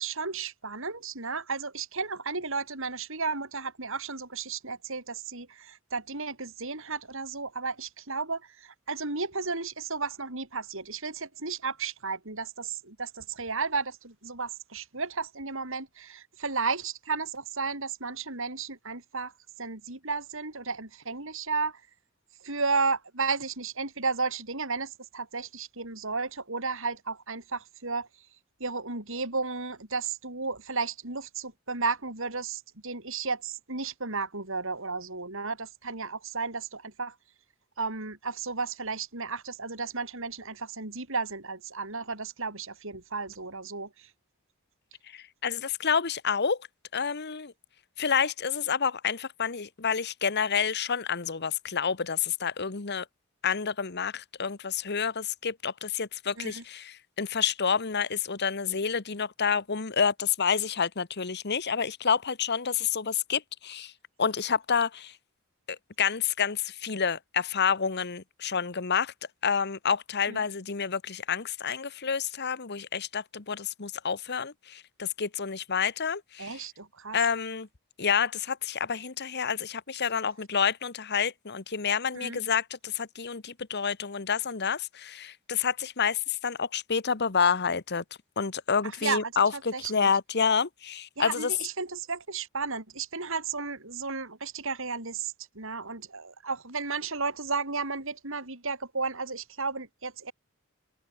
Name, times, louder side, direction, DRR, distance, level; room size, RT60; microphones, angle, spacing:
voice 1, 0.0-19.3 19.6-21.8 22.4-28.1 28.6-37.1 37.8-44.1 56.4-56.6 70.3-70.4 76.4-77.2 82.1-82.4 88.8-90.1 91.2-100.3, right 4 dB, 65° right, 5.1 m, -33 dB
voice 2, 45.1-46.6 46.9-47.5 48.0-53.0 53.4-63.9 64.2-65.1 65.7-69.1 69.4-76.6 77.1-77.7 78.0-88.0 88.4-91.5, left 6 dB, 50° left, 1.2 m, -29 dB
open air
head